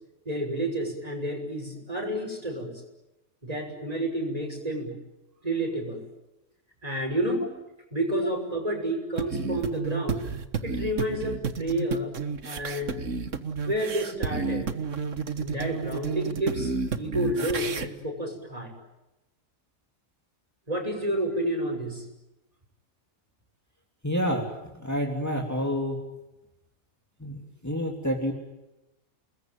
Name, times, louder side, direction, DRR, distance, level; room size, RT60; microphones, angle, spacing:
voice 1, 0.2-2.7 3.4-5.0 5.4-6.0 6.8-7.5 7.9-10.3 10.6-12.1 12.4-13.0 13.6-14.7 15.4-18.7 20.7-22.0, right 1 dB, 30° right, 2 dB, 6.4 m, -30 dB
sound 1, 9.2-17.9, right 5 dB, 75° right, 1.8 m, -31 dB
voice 2, 24.0-24.5 24.7-26.1 27.2-28.3, equal, 15° left, 2 dB, 3.2 m, -28 dB
29.5 x 21.0 x 9.1 m, 0.95 s
omnidirectional pair, 1.3 m